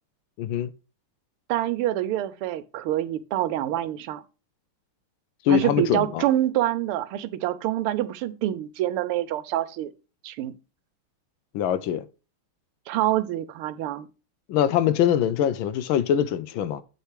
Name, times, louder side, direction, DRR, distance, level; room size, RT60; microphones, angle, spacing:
voice 1, 0.4-0.7 5.4-6.3 11.5-12.1 14.5-16.8, left 9 dB, 75° left, 1.3 m, -23 dB
voice 2, 1.5-4.2 5.5-9.9 10.2-10.5 12.9-14.1, right 13 dB, 90° right, 1.6 m, -26 dB
8.1 x 6.5 x 3.1 m
omnidirectional pair, 2.4 m